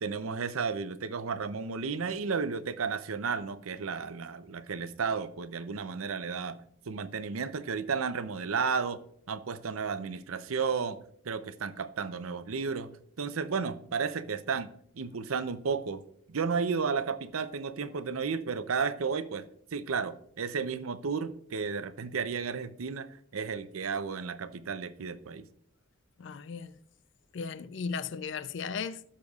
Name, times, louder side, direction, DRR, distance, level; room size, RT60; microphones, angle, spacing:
voice 1, 0.0-6.6 6.9-9.0 9.3-11.0 11.2-12.9 13.2-14.7 15.0-16.0 16.3-19.5 19.7-25.4, right 5 dB, 90° right, 0.6 m, -33 dB
voice 2, 26.2-26.7 27.3-29.0, left 5 dB, 60° left, 0.4 m, -36 dB
15.5 x 6.5 x 2.4 m
head